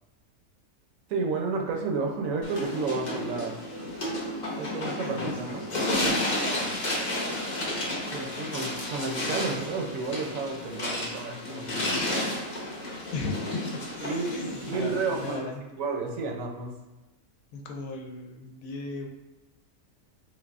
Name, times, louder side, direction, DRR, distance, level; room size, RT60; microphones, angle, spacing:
voice 1, 1.1-3.6 4.6-5.7 8.1-12.2 14.0-15.5 15.8-16.7, right 4 dB, 75° right, 1 dB, 1.0 m, -31 dB
sound 1, 2.4-15.4, left 1 dB, 45° left, 0.6 m, -32 dB
voice 2, 5.1-5.8 6.5-6.8 13.1-13.9 14.3-15.6 17.5-19.1, left 3 dB, 75° left, 2 dB, 1.0 m, -36 dB
3.3 x 3.1 x 2.4 m, 1.1 s
omnidirectional pair, 1.5 m